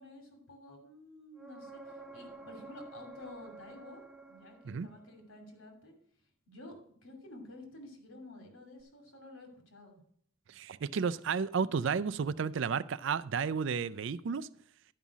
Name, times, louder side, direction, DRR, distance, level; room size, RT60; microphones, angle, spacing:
voice 1, 0.0-4.0 4.3-5.9 6.5-10.0, left 2 dB, 80° left, 2.8 m, -51 dB
sound 1, 1.4-5.1 8.8-8.9, right 3 dB, 5° right, 0.6 m, -50 dB
voice 2, 10.5-14.5, right 6 dB, 60° right, 0.4 m, -32 dB
11.5 x 5.6 x 6.0 m
head